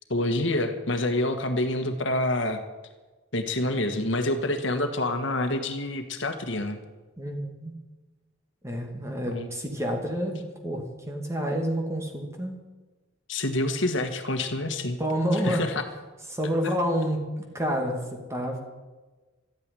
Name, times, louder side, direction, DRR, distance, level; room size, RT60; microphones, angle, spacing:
voice 1, 0.1-2.6 3.3-6.8 9.3-9.5 13.3-15.0 15.4-15.8, left 1 dB, 65° left, 7 dB, 1.6 m, -27 dB
voice 2, 7.2-7.8 8.6-12.6 15.0-15.7 16.3-17.3 17.5-18.6, equal, 15° right, 2 dB, 2.3 m, -29 dB
13.5 x 9.3 x 9.9 m, 1.2 s
head